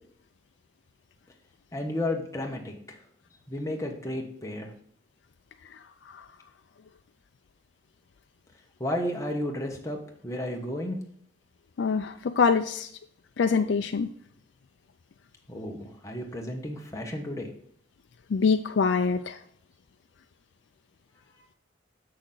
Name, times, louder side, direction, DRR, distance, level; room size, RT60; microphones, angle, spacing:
voice 1, 1.7-3.0 3.5-4.7 8.8-11.0 15.5-17.5, left 1 dB, 15° left, 1 dB, 1.2 m, -33 dB
voice 2, 11.8-12.9 13.4-14.1 18.3-19.4, left 5 dB, 70° left, 7 dB, 0.4 m, -24 dB
7.5 x 6.3 x 3.8 m, 0.64 s
head